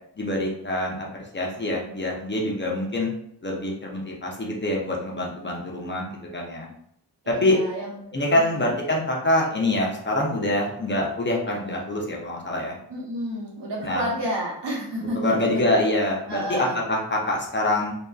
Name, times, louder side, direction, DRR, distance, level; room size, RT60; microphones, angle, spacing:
voice 1, 0.2-3.1 3.4-6.7 7.3-7.6 8.1-12.8 13.8-14.0 15.1-17.9, left 1 dB, 30° left, -2 dB, 0.5 m, -25 dB
voice 2, 7.2-8.7 12.9-15.5 16.3-16.8, equal, 85° right, -4 dB, 1.0 m, -31 dB
2.6 x 2.2 x 2.3 m, 0.71 s
wide cardioid pair, 75°, 41 cm